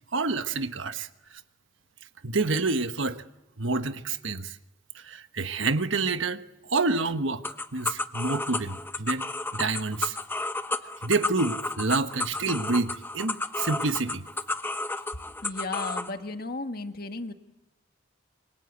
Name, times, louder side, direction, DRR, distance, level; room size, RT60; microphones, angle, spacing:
voice 1, 0.1-1.1 2.2-3.2 3.6-4.6 4.9-6.4 6.7-7.4 7.7-9.3 9.5-10.2 11.0-14.2, right 3 dB, 70° right, 1.3 m, -28 dB
sound 1, 7.4-16.1, left 2 dB, 10° left, 0.9 m, -32 dB
voice 2, 15.4-17.3, left 3 dB, 50° left, 1.7 m, -34 dB
27.0 x 25.0 x 8.1 m
head